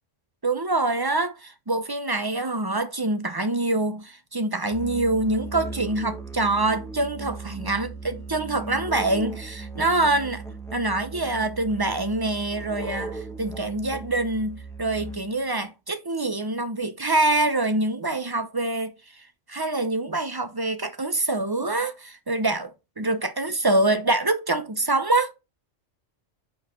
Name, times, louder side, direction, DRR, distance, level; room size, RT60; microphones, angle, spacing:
voice 1, 0.4-10.4 10.7-22.7 23.0-25.3, right 2 dB, 25° right, 0.5 m, -25 dB
Musical instrument, 4.7-15.5, right 3 dB, ahead, 0.9 m, -37 dB
5.3 x 4.5 x 5.6 m
omnidirectional pair, 1.3 m